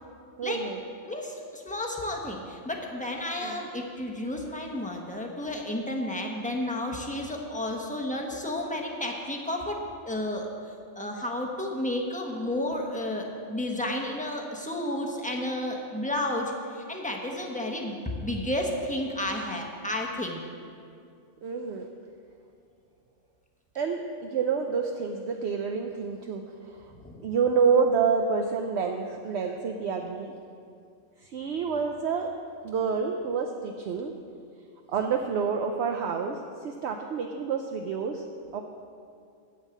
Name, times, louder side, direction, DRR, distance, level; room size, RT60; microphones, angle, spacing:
voice 1, 0.4-0.8 3.4-3.6 21.4-21.9 23.7-26.9 27.2-30.3 31.2-32.3 32.6-34.1 34.9-38.2 38.5-38.6, right 5 dB, 65° right, 4 dB, 0.9 m, -28 dB
voice 2, 1.0-9.8 10.0-10.5 11.0-17.9 18.2-20.4 26.9-27.3, left 1 dB, 5° left, 1 dB, 1.1 m, -32 dB
8.9 x 7.3 x 8.2 m, 2.4 s
omnidirectional pair, 1.3 m